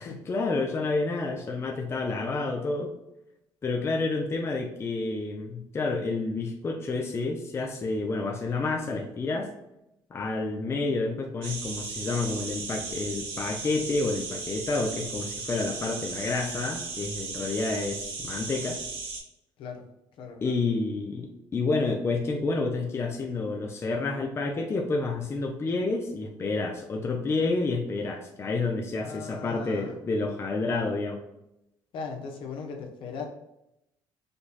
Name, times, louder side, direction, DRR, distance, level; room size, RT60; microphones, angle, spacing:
voice 1, 0.0-2.9 3.6-9.5 10.1-18.8 20.4-31.2, left 3 dB, 25° left, 1 dB, 0.6 m, -29 dB
sound 1, 11.4-19.2, right 4 dB, 80° right, 1.4 m, -36 dB
voice 2, 20.2-20.6 29.0-30.0 31.9-33.3, left 5 dB, 65° left, 1 dB, 1.0 m, -38 dB
5.2 x 2.3 x 4.1 m, 0.85 s
cardioid pair, 120°, 9 cm